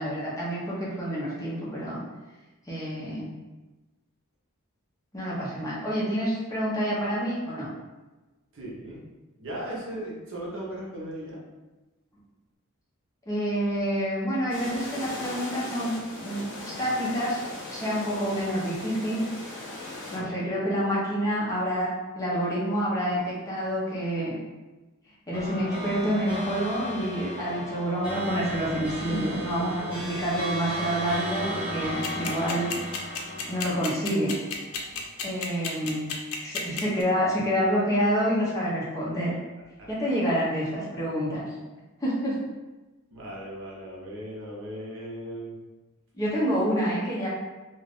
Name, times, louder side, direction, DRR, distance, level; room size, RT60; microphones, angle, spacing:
voice 1, 0.0-2.0 2.7-3.3 5.1-7.7 13.3-17.4 17.7-19.2 20.1-21.9 22.2-24.3 25.3-33.1 33.5-34.3 35.2-36.1 36.4-39.3 39.9-41.5 42.0-42.4 46.1-47.3, equal, 15° left, -7 dB, 0.7 m, -28 dB
voice 2, 8.5-9.0 9.4-11.4 20.1-20.5 27.4-27.7 29.1-30.2 34.9-35.0 39.8-39.9 43.1-45.6, right 1 dB, 60° right, -4 dB, 0.8 m, -38 dB
sound 1, 14.5-20.2, left 2 dB, 60° left, 0.7 m, -38 dB
sound 2, 25.3-35.0, equal, 25° right, 1.1 m, -35 dB
sound 3, 32.0-37.0, left 6 dB, 90° left, 0.5 m, -31 dB
2.5 x 2.4 x 3.4 m, 1.1 s
head